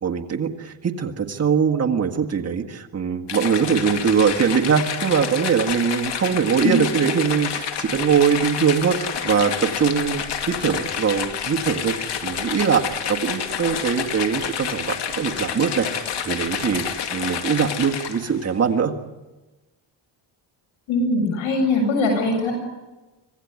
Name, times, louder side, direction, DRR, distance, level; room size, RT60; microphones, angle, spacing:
voice 1, 0.0-16.8 17.1-18.9, right 6 dB, 30° right, 2 dB, 1.7 m, -22 dB
sound 1, 3.3-18.4, left 8 dB, 60° left, 2.2 m, -29 dB
voice 2, 20.9-22.5, left 2 dB, 80° left, 2 dB, 7.5 m, -21 dB
25.5 x 17.0 x 9.6 m, 1.1 s
cardioid pair, 125°, 47 cm